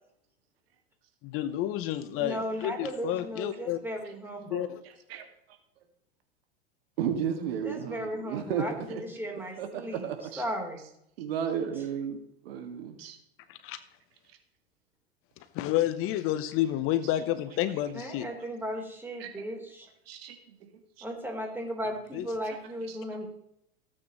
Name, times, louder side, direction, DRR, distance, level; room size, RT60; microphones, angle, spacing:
voice 1, 1.2-3.8 4.5-4.8 13.5-13.8 15.5-18.2 22.1-22.2, left 13 dB, 45° left, 12 dB, 0.9 m, -30 dB
voice 2, 2.2-4.7 7.6-10.1 10.4-10.9 17.9-19.9 21.0-23.2, equal, 5° right, 0 dB, 3.9 m, -36 dB
voice 3, 4.8-5.3 7.0-9.1 9.3-10.4 10.8-10.9 11.2-13.2 17.0-17.8 19.2-19.5 20.1-20.6 21.0-21.1 22.4-23.0, right 8 dB, 70° right, 6 dB, 2.2 m, -35 dB
17.0 x 8.9 x 3.1 m, 0.75 s
hypercardioid pair, 105°, 31 cm